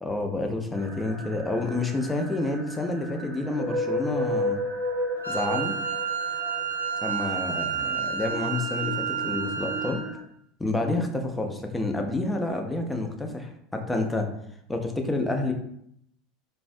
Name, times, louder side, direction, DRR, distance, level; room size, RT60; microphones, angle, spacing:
voice 1, 0.0-4.6 5.3-5.8 7.0-10.0 10.6-14.3 14.7-15.5, left 2 dB, 10° left, 3 dB, 0.4 m, -29 dB
sound 1, 0.7-10.2, left 1 dB, 45° right, 0.7 m, -34 dB
Wind instrument woodwind instrument, 5.2-10.1, right 6 dB, 85° right, 0.4 m, -30 dB
2.4 x 2.1 x 2.4 m, 0.71 s
figure-of-eight pair, 75°, 0 cm